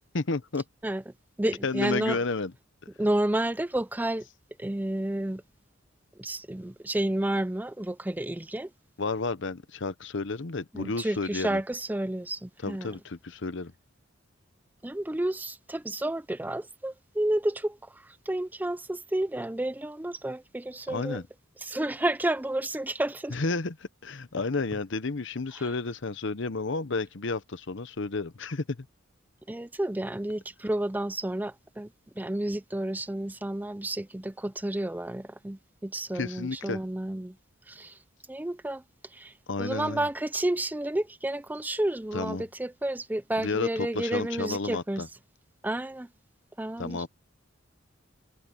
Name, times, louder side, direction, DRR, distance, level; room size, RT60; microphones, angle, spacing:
voice 1, 0.1-0.6 1.6-2.5 9.0-11.6 12.6-13.7 20.9-21.2 23.3-28.9 36.1-36.8 39.5-40.1 42.1-42.4 43.4-45.1 46.8-47.1, left 3 dB, 60° left, 0.9 m, -31 dB
voice 2, 1.4-2.2 3.0-4.3 4.6-5.4 6.2-8.7 10.7-13.0 14.8-21.2 21.6-23.4 29.5-31.9 32.2-37.4 37.7-38.0 38.3-45.0 45.6-46.1 46.6-47.0, right 1 dB, 10° right, 0.4 m, -31 dB
head